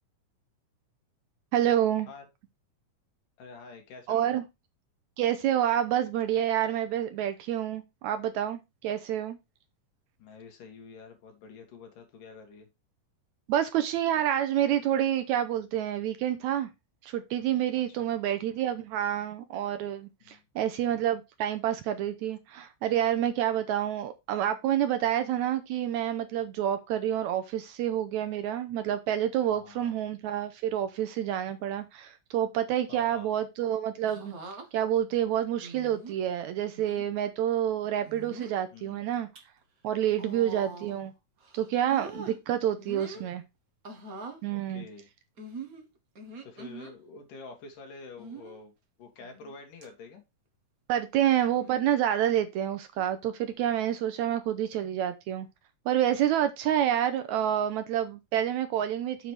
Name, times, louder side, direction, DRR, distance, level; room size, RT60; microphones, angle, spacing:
voice 1, 1.5-2.1 4.1-4.4 5.2-9.4 13.5-16.7 17.0-34.3 34.7-39.3 39.8-41.1 41.5-43.4 44.4-44.8 50.9-55.5 55.9-59.3, right 11 dB, 75° right, 1.8 m, -28 dB
voice 2, 3.4-4.4 10.2-12.7 17.9-18.1 20.2-20.4 29.5-29.9 32.9-33.4 38.7-39.0 40.1-40.5 43.0-43.2 44.5-45.1 46.4-48.7 49.0-50.2, left 4 dB, 80° left, 3.6 m, -48 dB
sound 1, 34.0-34.7 35.6-36.2 36.7-37.0 38.0-38.6 39.1-39.4 40.1-41.1 41.4-42.4 42.8-43.3 43.8-44.4 45.4-46.9 48.2-48.6 49.2-49.5 49.8-49.9 51.5-51.9 53.0-53.2, right 3 dB, 50° right, 1.0 m, -43 dB
7.5 x 5.1 x 4.7 m
omnidirectional pair, 3.7 m